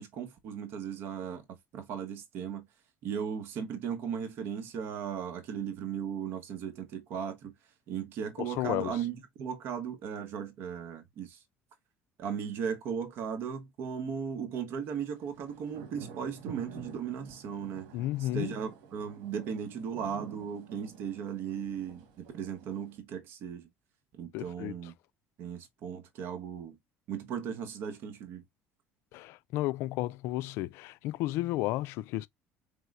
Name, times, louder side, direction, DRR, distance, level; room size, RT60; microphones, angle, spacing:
voice 1, 0.0-1.4 1.7-2.7 3.0-7.5 7.9-11.4 12.2-17.9 18.2-23.7 24.1-24.9 25.4-26.8 27.1-28.4, right 7 dB, 60° right, 1.2 m, -37 dB
voice 2, 8.4-8.9 17.9-18.5 24.3-24.8 29.1-32.3, left 16 dB, 70° left, 0.3 m, -33 dB
sound 1, 14.9-23.0, right 6 dB, 85° right, 1.4 m, -50 dB
4.5 x 3.4 x 2.5 m
cardioid pair, 125°, 4 cm